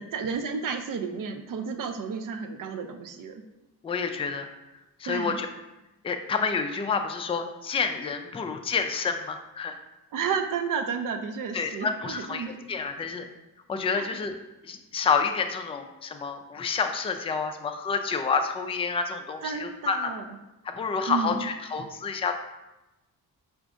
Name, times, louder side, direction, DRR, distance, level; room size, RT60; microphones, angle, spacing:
voice 1, 0.0-3.4 5.1-5.4 10.1-12.5 13.9-14.2 19.4-20.2 21.1-21.5, right 6 dB, 50° right, 6 dB, 0.5 m, -32 dB
voice 2, 3.8-4.5 5.0-5.5 6.0-9.8 11.5-13.3 13.7-14.3 14.6-20.1 20.6-22.3, left 5 dB, 15° left, 6 dB, 0.3 m, -29 dB
4.9 x 2.5 x 2.4 m, 1.0 s
supercardioid pair, 50°, 41 cm